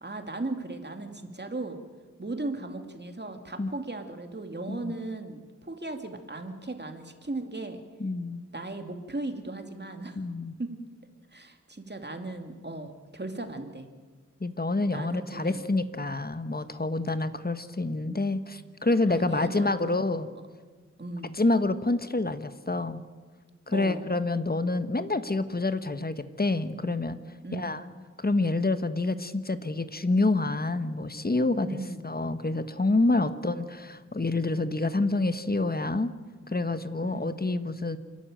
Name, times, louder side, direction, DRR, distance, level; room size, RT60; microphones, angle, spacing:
voice 1, 0.0-1.8 2.2-7.8 8.5-10.2 10.6-10.7 11.3-13.9 14.9-15.6 19.1-20.0 21.0-21.3 23.7-24.1 27.4-27.8 31.7-32.0 37.0-37.4, right 2 dB, 35° right, 6 dB, 2.4 m, -37 dB
voice 2, 8.0-8.4 10.2-10.5 14.4-20.3 21.3-23.0 23.7-27.2 27.5-27.8 28.2-31.7 32.0-36.1 36.5-38.0, left 2 dB, 30° left, 11 dB, 1.2 m, -27 dB
27.5 x 12.0 x 8.9 m, 1.4 s
wide cardioid pair, 55°, 29 cm